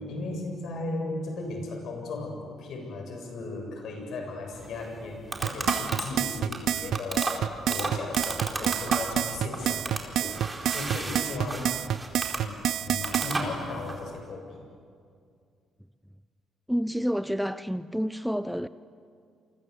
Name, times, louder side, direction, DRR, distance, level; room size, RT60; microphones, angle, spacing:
voice 1, 0.0-10.4 10.7-11.8 12.3-14.6, left 2 dB, 70° left, 7.5 m, -36 dB
sound 1, 4.5-14.0, right 2 dB, 25° right, 4.4 m, -35 dB
sound 2, 5.4-13.4, right 10 dB, 75° right, 0.7 m, -28 dB
voice 2, 16.7-18.7, equal, ahead, 0.6 m, -29 dB
28.5 x 24.0 x 8.3 m
cardioid pair, 90°, 0 cm